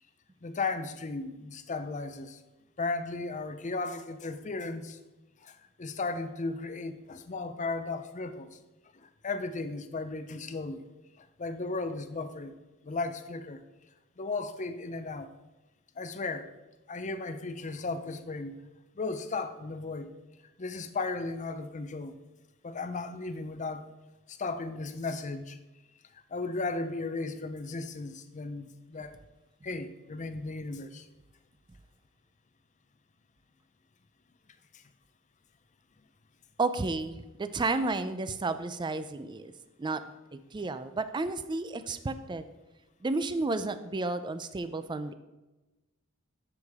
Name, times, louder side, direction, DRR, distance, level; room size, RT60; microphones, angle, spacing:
voice 1, 0.4-2.4 2.8-5.0 5.4-8.6 9.0-10.8 11.2-12.5 12.8-13.6 14.2-15.3 16.0-16.5 16.9-18.6 19.0-20.1 20.6-22.2 22.6-23.9 24.3-25.6 26.3-29.2 29.6-31.1 34.7-34.8, left 3 dB, 35° left, 10 dB, 0.6 m, -35 dB
voice 2, 36.6-39.5 39.8-40.0 40.3-42.5 43.0-45.1, right 3 dB, 20° right, 11 dB, 0.4 m, -32 dB
12.5 x 5.0 x 3.5 m, 1.1 s
head